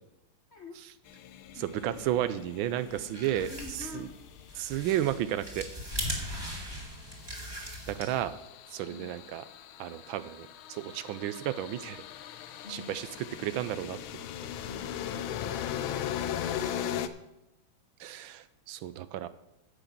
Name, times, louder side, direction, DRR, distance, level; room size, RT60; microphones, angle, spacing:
voice 1, 0.5-0.8 1.5-2.1 3.2-4.1 6.3-6.4 8.9-9.2 12.6-13.0, left 2 dB, 55° left, 3 dB, 0.8 m, -47 dB
sound 1, 1.1-5.4 6.9-17.1, left 10 dB, 90° left, 1.5 m, -39 dB
voice 2, 1.5-3.5 3.9-4.1 4.6-5.6 6.1-6.2 7.9-8.3 8.7-9.4 9.8-12.0 12.7-14.3 16.9-17.1 18.0-19.3, right 12 dB, 80° right, 14 dB, 1.4 m, -33 dB
sound 2, 2.9-8.4, equal, 10° right, 2.0 m, -39 dB
10.0 x 6.2 x 7.4 m, 0.89 s
omnidirectional pair, 2.2 m